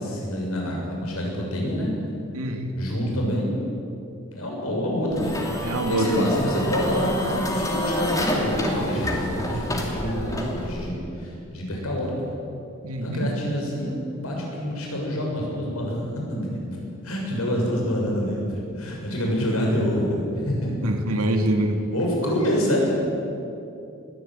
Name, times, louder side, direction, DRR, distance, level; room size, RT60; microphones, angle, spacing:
voice 1, 0.0-1.9 2.8-3.5 4.3-12.3 13.0-16.7 17.0-21.2 21.9-22.9, equal, 90° left, -1 dB, 6.8 m, -27 dB
voice 2, 2.3-2.7 5.6-6.3 12.8-13.3 20.8-21.8, right 1 dB, 90° right, 4 dB, 2.5 m, -24 dB
sound 1, 5.1-10.9, left 1 dB, 15° left, 2.6 m, -28 dB
21.5 x 15.0 x 9.2 m, 2.7 s
head